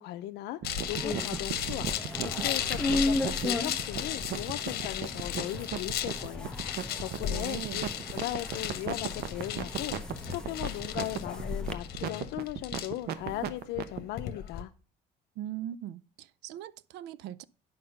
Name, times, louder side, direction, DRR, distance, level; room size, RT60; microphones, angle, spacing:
voice 1, 0.0-1.9 2.2-7.8 8.1-14.7, left 15 dB, 85° left, 0.6 m, -38 dB
sound 1, 0.6-14.6, left 11 dB, 65° left, 1.0 m, -36 dB
sound 2, 0.6-14.0, right 10 dB, 70° right, 0.9 m, -36 dB
sound 3, 0.8-11.7, left 2 dB, 5° left, 0.9 m, -36 dB
voice 2, 7.3-7.9 15.4-17.4, right 12 dB, 85° right, 0.5 m, -40 dB
7.9 x 5.5 x 6.3 m
cardioid pair, 110°, 17 cm